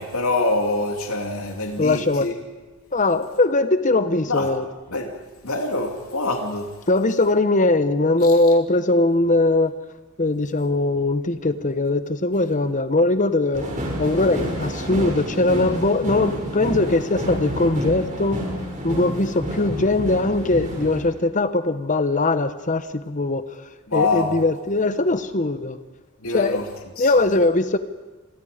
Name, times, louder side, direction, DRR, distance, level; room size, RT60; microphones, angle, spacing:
voice 1, 0.0-2.3 4.3-4.5 4.9-5.1 5.4-6.7 8.2-8.3 19.0-19.3 23.9-24.4 26.2-26.7 27.0-27.1, left 2 dB, 85° left, 2.8 m, -25 dB
voice 2, 1.8-2.3 2.9-4.7 6.9-9.7 10.2-13.6 14.0-18.4 18.8-23.6 23.9-25.8 26.3-26.6 27.0-27.8, left 2 dB, 35° left, 1.1 m, -20 dB
sound 1, 13.5-21.0, equal, 35° right, 6.3 m, -29 dB
29.0 x 23.5 x 5.1 m
head